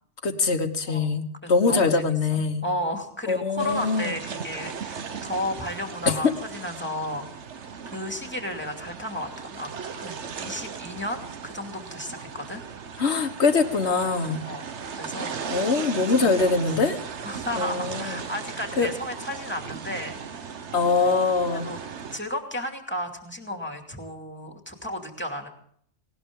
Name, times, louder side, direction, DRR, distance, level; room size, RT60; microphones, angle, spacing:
voice 1, 0.2-2.6 3.3-4.2 6.1-6.3 13.0-14.4 15.5-17.0 17.6-18.2 18.8-18.9 20.7-21.7, left 4 dB, 70° left, 7 dB, 1.7 m, -23 dB
voice 2, 1.4-2.1 2.3-7.3 7.9-12.6 14.4-14.6 14.9-15.4 15.9-16.6 17.2-20.6 21.6-21.8 22.1-25.5, left 1 dB, 10° left, 3 dB, 2.5 m, -33 dB
sound 1, 3.6-22.2, right 6 dB, 80° right, 1.4 m, -37 dB
19.0 x 18.5 x 3.8 m, 0.64 s
omnidirectional pair, 1.2 m